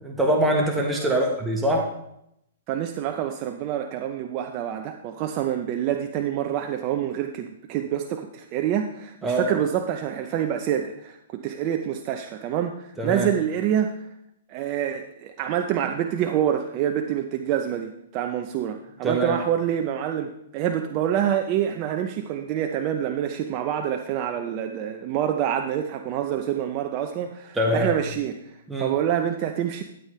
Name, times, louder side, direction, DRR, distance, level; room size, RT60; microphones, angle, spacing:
voice 1, 0.0-1.9 9.2-9.5 13.0-13.3 19.0-19.4 27.5-27.9 28.7-28.9, right 1 dB, 5° right, -1 dB, 1.3 m, -23 dB
voice 2, 2.7-13.9 14.5-29.8, right 10 dB, 35° right, 5 dB, 0.7 m, -27 dB
12.5 x 8.3 x 3.3 m, 0.78 s
hypercardioid pair, 145°, 0 cm